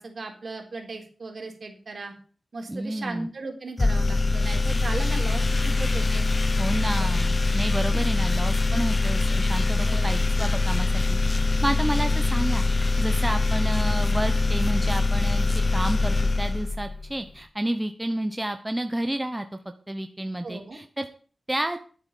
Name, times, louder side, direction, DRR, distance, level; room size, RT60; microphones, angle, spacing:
voice 1, 0.0-2.1 2.5-6.3 6.8-7.1 9.8-10.5 20.4-20.8, right 3 dB, 55° right, 3 dB, 3.8 m, -37 dB
voice 2, 2.7-3.3 6.6-15.5 15.7-19.5 19.9-21.1 21.5-21.8, right 1 dB, 15° right, 7 dB, 0.9 m, -30 dB
sound 1, 3.8-17.2, left 3 dB, 35° left, 0.9 m, -23 dB
11.5 x 8.2 x 7.2 m, 0.42 s
wide cardioid pair, 110°, 0 cm